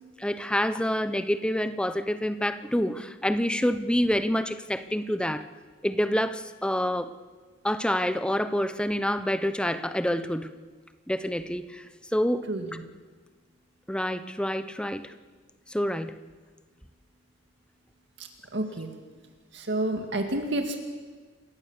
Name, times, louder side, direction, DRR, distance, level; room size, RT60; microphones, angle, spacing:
voice 1, 0.2-5.5 5.8-7.1 7.6-10.5 11.1-11.8 12.1-12.4 13.9-15.1 15.7-16.1, equal, 5° left, 11 dB, 0.8 m, -27 dB
voice 2, 12.5-12.8 18.2-18.9 19.5-20.8, right 1 dB, 65° right, 4 dB, 2.1 m, -30 dB
27.5 x 16.0 x 7.3 m, 1.4 s
head